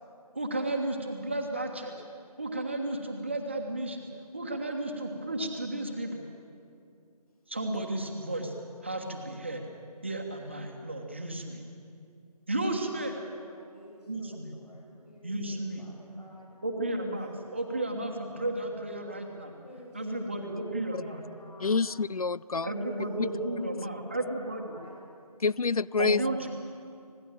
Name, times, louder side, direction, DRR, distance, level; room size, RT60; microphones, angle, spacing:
voice 1, 0.3-1.9 2.4-4.1 4.3-6.3 7.5-8.5 8.8-9.6 10.0-11.6 12.5-13.2 14.1-14.5 15.2-15.8 16.6-19.5 19.9-21.2 22.6-24.7 26.0-26.5, right 1 dB, 20° right, 2 dB, 1.4 m, -33 dB
voice 2, 12.5-17.9 19.5-20.7 21.0-21.9 22.5-23.7 24.0-25.0, equal, 80° left, -2 dB, 6.5 m, -51 dB
voice 3, 21.6-22.7 25.4-26.2, left 4 dB, 65° left, 22 dB, 0.4 m, -27 dB
25.5 x 19.0 x 7.4 m, 2.5 s
figure-of-eight pair, 175°, 20 cm